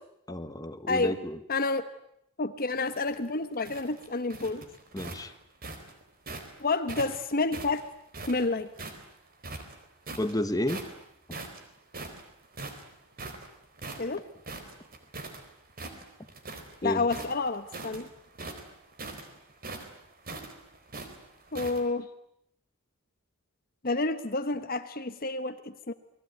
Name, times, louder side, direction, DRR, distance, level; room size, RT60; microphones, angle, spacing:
voice 1, 0.3-1.4 4.9-5.3 10.2-10.9 16.8-17.0, left 1 dB, 15° left, 9 dB, 1.5 m, -31 dB
voice 2, 1.5-1.8 2.4-4.6 6.6-7.8 8.3-8.7 14.0-14.3 16.8-18.1 21.5-22.1 23.8-25.9, left 3 dB, 45° left, 10 dB, 1.2 m, -29 dB
sound 1, 2.7-6.5 6.9-9.0 9.4-10.3 10.7-11.0 11.3-15.4 15.7-16.8 17.0-21.8, right 3 dB, 45° right, 4.1 m, -41 dB
29.0 x 20.5 x 9.3 m, 0.76 s
head